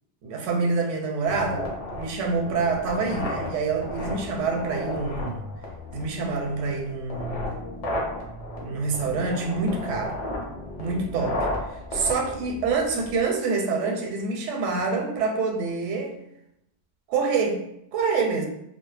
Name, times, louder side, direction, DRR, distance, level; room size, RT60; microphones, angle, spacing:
voice 1, 0.2-1.7 1.9-5.4 5.9-7.5 8.6-10.2 10.8-11.4 11.9-16.1 17.1-17.6 17.9-18.5, right 4 dB, 85° right, 2 dB, 0.9 m, -26 dB
sound 1, 1.2-13.2, left 1 dB, 45° left, 0.5 m, -34 dB
2.2 x 2.0 x 3.2 m, 0.79 s
omnidirectional pair, 1.2 m